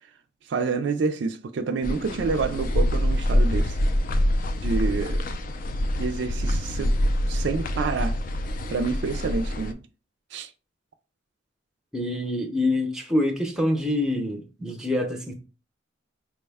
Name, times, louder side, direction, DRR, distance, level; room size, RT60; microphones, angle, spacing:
voice 1, 0.5-3.8 4.6-5.2 5.9-6.9 7.3-8.2 8.7-9.8 10.3-10.5, right 4 dB, 60° right, 0.3 m, -28 dB
sound 1, 1.8-9.7, equal, 45° left, 0.3 m, -25 dB
voice 2, 11.9-15.3, left 1 dB, 5° right, 0.6 m, -26 dB
4.6 x 2.2 x 3.4 m
head